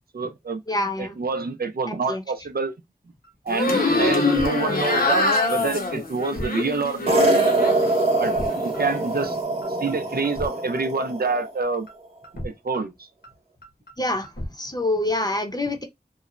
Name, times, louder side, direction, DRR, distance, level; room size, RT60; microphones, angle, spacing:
voice 1, 0.0-0.6 1.0-2.7 3.5-7.3 8.2-9.4 9.7-11.9 12.4-13.1, right 4 dB, 65° right, 0.4 m, -27 dB
voice 2, 0.7-1.2 2.1-2.2 14.0-14.3 14.6-15.8, left 2 dB, 25° left, 0.7 m, -25 dB
sound 1, 3.2-3.3 3.6-3.9 4.2-4.5 4.7-4.8 5.2-5.3 5.6-5.9 6.2-6.5 6.7-6.8 7.2-7.3 7.6-7.9 8.2-8.5 8.7-8.8 9.2-9.3 9.6-9.9 10.2-10.5 10.7-10.8 11.2-11.3 11.6-11.9 12.2-12.5 12.7-12.8 13.2-13.3 13.6-13.9 14.2-14.5, equal, 75° left, 1.1 m, -35 dB
sound 2, 3.5-7.9 8.2-9.0, left 3 dB, 60° left, 0.8 m, -24 dB
sound 3, 7.1-11.5, right 2 dB, 35° right, 0.9 m, -23 dB
3.0 x 2.1 x 2.4 m
wide cardioid pair, 45°, 17 cm